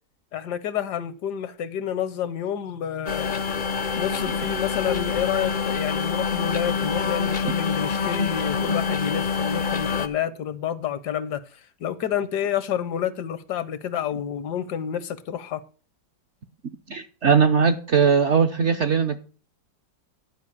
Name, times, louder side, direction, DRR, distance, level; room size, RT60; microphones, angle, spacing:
voice 1, 0.3-3.4 4.0-15.6, left 9 dB, 75° left, 1.3 m, -29 dB
sound 1, 3.1-10.1, left 5 dB, 50° left, 0.6 m, -26 dB
voice 2, 16.9-19.2, right 6 dB, 60° right, 0.8 m, -20 dB
11.0 x 5.2 x 6.9 m
omnidirectional pair, 1.8 m